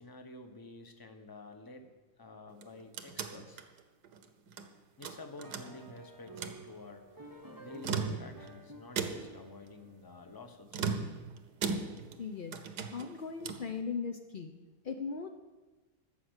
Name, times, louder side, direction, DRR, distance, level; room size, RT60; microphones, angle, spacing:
voice 1, 0.0-1.9 2.2-3.6 5.0-7.2 7.6-10.9, left 3 dB, 20° left, 6 dB, 0.7 m, -50 dB
sound 1, 2.5-4.7 5.0-6.0 6.3-6.6 7.7-8.5 9.0-9.5 10.7-12.2 12.5-13.7, right 5 dB, 75° right, 1.4 m, -37 dB
sound 2, 5.4-10.7, right 2 dB, 20° right, 0.6 m, -52 dB
voice 2, 12.2-15.3, left 5 dB, 75° left, 5 dB, 0.4 m, -39 dB
12.5 x 6.9 x 8.0 m, 1.2 s
omnidirectional pair, 1.8 m